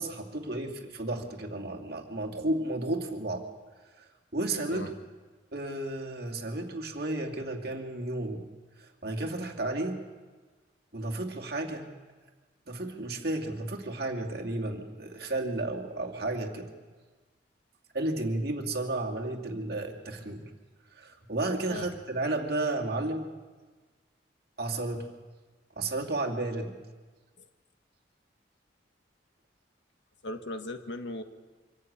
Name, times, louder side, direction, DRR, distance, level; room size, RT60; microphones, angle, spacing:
voice 1, 0.0-3.5 4.0-4.9 5.5-8.4 8.8-10.0 10.9-11.9 12.7-16.7 17.9-20.4 20.9-23.3 24.6-25.1 25.8-26.7, right 2 dB, 55° right, 1 dB, 2.5 m, -33 dB
voice 2, 30.2-31.2, left 1 dB, 75° left, 7 dB, 1.5 m, -38 dB
25.0 x 14.0 x 8.8 m, 1.4 s
head